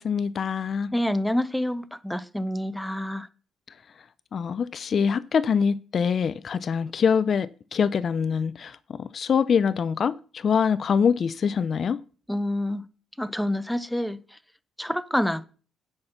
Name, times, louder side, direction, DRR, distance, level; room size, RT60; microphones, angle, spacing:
voice 1, 0.0-0.9 4.3-12.0, left 6 dB, 50° left, 0.4 m, -24 dB
voice 2, 0.9-3.3 12.3-12.8 13.2-14.2 14.8-15.4, left 1 dB, 5° left, 0.6 m, -27 dB
9.7 x 5.7 x 5.8 m
cardioid pair, 90°, 0 cm